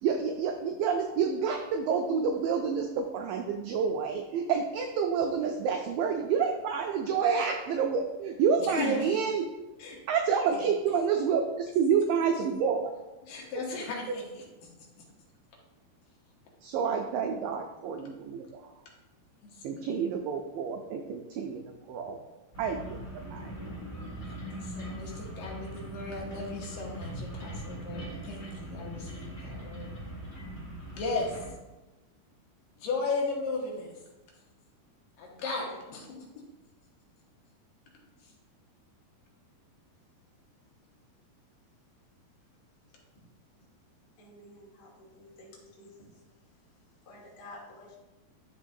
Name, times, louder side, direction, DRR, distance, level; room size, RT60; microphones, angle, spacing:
voice 1, 0.0-9.5 10.1-12.9 16.6-18.7 19.6-22.2 22.6-23.5, right 6 dB, 90° right, 3 dB, 1.9 m, -29 dB
voice 2, 8.6-9.0 9.8-10.0 10.5-10.6 13.2-14.4 19.5-19.9 24.3-29.9 30.9-31.4 32.8-34.0 35.2-36.3, left 3 dB, 65° left, -2 dB, 2.6 m, -36 dB
sound 1, 22.5-31.5, right 1 dB, 25° left, 1.6 m, -41 dB
voice 3, 44.2-46.1 47.0-47.9, left 1 dB, 50° left, -5 dB, 1.2 m, -51 dB
11.0 x 4.5 x 2.6 m, 1.1 s
omnidirectional pair, 4.6 m